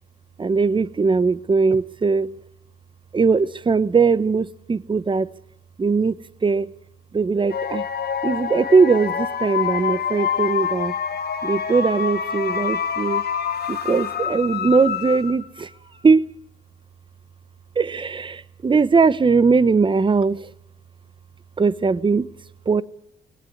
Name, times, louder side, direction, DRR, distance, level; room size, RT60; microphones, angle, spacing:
voice 1, 0.4-2.3 3.1-5.3 5.8-6.7 7.1-7.8 8.2-10.9 11.4-13.2 13.7-15.7 16.0-16.3 17.7-20.5 21.6-22.3 22.7-22.8, right 4 dB, 25° right, 18 dB, 0.9 m, -20 dB
sound 1, 7.5-15.6, left 7 dB, 55° left, 1.9 m, -26 dB
20.0 x 17.0 x 8.5 m, 0.78 s
cardioid pair, 90°, 20 cm